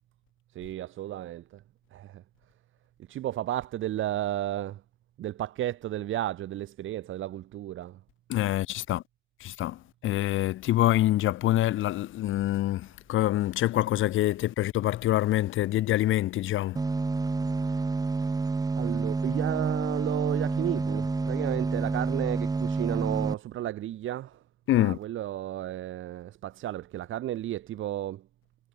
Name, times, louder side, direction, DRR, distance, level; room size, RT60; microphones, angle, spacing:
voice 1, 0.5-1.6 1.9-2.2 3.1-4.8 5.2-8.0 17.7-17.8 18.4-18.5 18.8-24.4 24.8-28.2, right 13 dB, 80° right, 4.2 m, -33 dB
voice 2, 8.3-9.0 9.4-16.8 24.7-25.0, left 14 dB, 80° left, 1.3 m, -26 dB
sound 1, 16.8-23.3, right 3 dB, 20° right, 0.7 m, -29 dB
cardioid pair, 90°, 20 cm